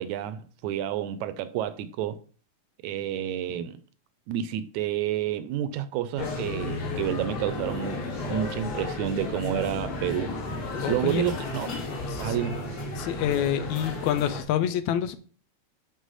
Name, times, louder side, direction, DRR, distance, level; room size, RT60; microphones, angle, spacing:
voice 1, 0.0-2.2 2.8-3.8 4.3-10.3 10.8-11.7 12.2-12.6, right 10 dB, 80° right, 1.9 m, -30 dB
sound 1, 6.2-14.4, left 2 dB, 40° left, 2.4 m, -34 dB
sound 2, 6.3-14.5, left 1 dB, 5° left, 1.2 m, -41 dB
voice 2, 10.8-11.2 12.1-12.4 12.9-15.2, left 10 dB, 80° left, 1.8 m, -27 dB
6.6 x 6.4 x 4.1 m
omnidirectional pair, 3.5 m